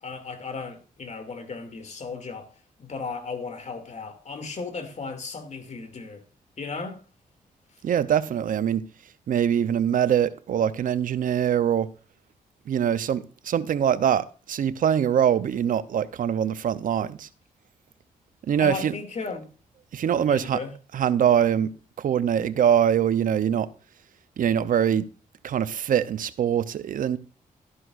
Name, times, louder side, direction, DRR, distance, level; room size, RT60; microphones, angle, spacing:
voice 1, 0.0-2.5 2.8-6.2 6.6-7.0 18.6-19.4 20.3-20.7, left 4 dB, 50° left, 2.5 m, -35 dB
voice 2, 7.8-8.8 9.3-11.9 12.7-17.3 18.5-18.9 19.9-20.6 20.9-21.7 22.0-23.7 24.4-25.1 25.4-27.2, right 9 dB, 70° right, 0.7 m, -23 dB
13.0 x 11.0 x 2.5 m
cardioid pair, 65°, 15 cm